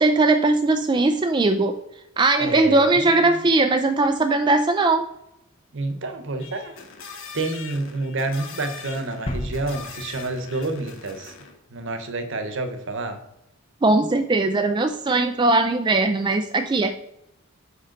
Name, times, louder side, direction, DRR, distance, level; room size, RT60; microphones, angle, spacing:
voice 1, 0.0-1.8 2.2-5.1 13.8-17.0, right 2 dB, 20° right, 0.3 m, -19 dB
voice 2, 2.4-3.4 5.7-6.8 7.3-11.3 11.7-13.2, right 2 dB, 60° right, 0.9 m, -29 dB
sound 1, 6.4-11.6, left 5 dB, 65° left, 1.2 m, -41 dB
sound 2, 9.3-11.9, left 1 dB, 25° left, 0.5 m, -35 dB
6.4 x 5.4 x 3.9 m
head